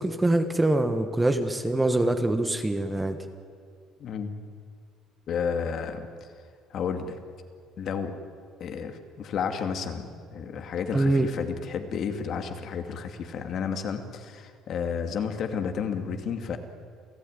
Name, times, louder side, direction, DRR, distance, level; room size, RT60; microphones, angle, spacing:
voice 1, 0.0-3.2 10.9-11.3, right 2 dB, 10° right, 8 dB, 1.3 m, -24 dB
voice 2, 4.0-4.3 5.3-6.1 6.7-7.2 7.8-8.2 8.6-16.6, left 6 dB, 50° left, 6 dB, 2.3 m, -31 dB
29.0 x 15.5 x 9.8 m, 2.1 s
cardioid pair, 145°, 0 cm